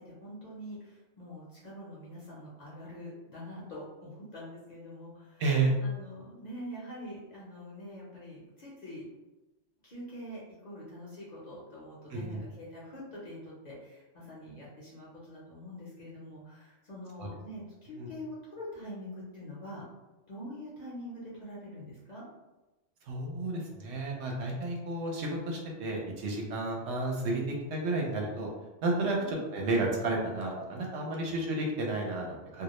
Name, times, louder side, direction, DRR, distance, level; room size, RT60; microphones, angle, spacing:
voice 1, 0.0-5.4 5.8-9.1 9.8-19.8 20.3-22.3 29.2-29.4, equal, 45° left, -7 dB, 0.6 m, -45 dB
voice 2, 5.4-5.7 12.1-12.4 17.2-17.3 18.0-18.1 23.1-28.5 28.8-32.6, right 2 dB, 70° right, -1 dB, 0.8 m, -31 dB
2.2 x 2.0 x 2.9 m, 1.1 s
omnidirectional pair, 1.2 m